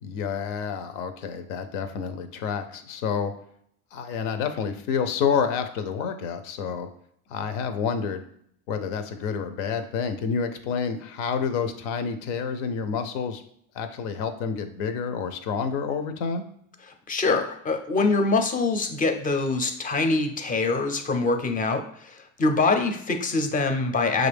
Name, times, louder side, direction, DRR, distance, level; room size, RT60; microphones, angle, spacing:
voice 1, 0.0-3.3 3.9-6.9 7.3-8.2 8.7-13.4 13.7-16.5, left 6 dB, 80° left, 8 dB, 0.7 m, -29 dB
voice 2, 17.1-24.3, left 3 dB, 20° left, 6 dB, 0.5 m, -24 dB
6.1 x 2.5 x 3.4 m, 0.69 s
cardioid pair, 125°, 39 cm